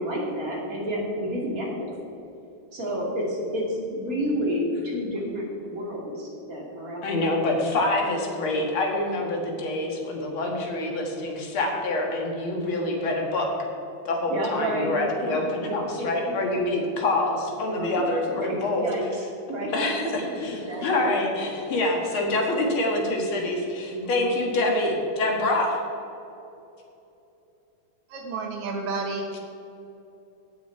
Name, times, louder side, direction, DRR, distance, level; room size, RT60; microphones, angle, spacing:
voice 1, 0.0-1.9 2.7-7.3 14.3-14.9 15.3-15.4 15.7-16.1 17.8-17.9 18.3-19.7 20.1-21.0 21.4-21.5 23.9-24.3, equal, 40° right, -3 dB, 2.7 m, -30 dB
voice 2, 7.0-13.5 14.1-18.9 19.7-20.5 20.8-25.8 29.3-29.4, left 2 dB, 70° left, 1 dB, 2.5 m, -26 dB
voice 3, 28.1-29.4, right 3 dB, 85° right, 1 dB, 2.1 m, -31 dB
17.0 x 6.3 x 4.6 m, 2.8 s
omnidirectional pair, 2.4 m